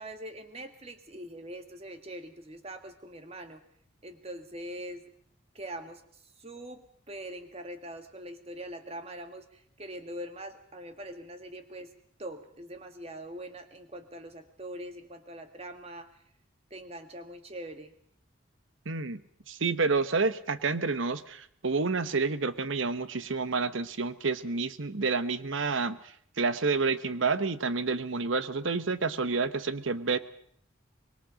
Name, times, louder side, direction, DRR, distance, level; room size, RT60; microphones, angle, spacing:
voice 1, 0.0-3.6 4.0-5.1 5.5-11.9 12.2-16.2 16.7-17.9, right 1 dB, 30° right, 8 dB, 1.8 m, -43 dB
voice 2, 18.9-19.2 19.5-26.0 26.4-30.2, right 4 dB, 70° right, 14 dB, 1.0 m, -29 dB
25.0 x 21.5 x 5.1 m, 0.62 s
head